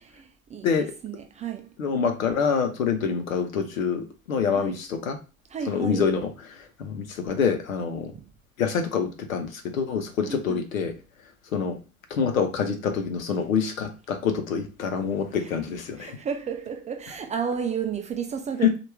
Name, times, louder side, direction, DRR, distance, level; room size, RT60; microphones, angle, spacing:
voice 1, 0.1-1.7 4.5-4.7 5.5-6.1 8.1-8.3 10.2-10.7 15.4-15.5 16.0-18.8, right 7 dB, 20° right, 0.3 m, -32 dB
voice 2, 1.8-5.2 5.7-6.3 6.8-8.1 8.6-10.9 11.5-11.8 12.1-16.2 18.6-18.7, left 6 dB, 75° left, 0.8 m, -26 dB
4.3 x 2.5 x 3.2 m
figure-of-eight pair, 65°, 41 cm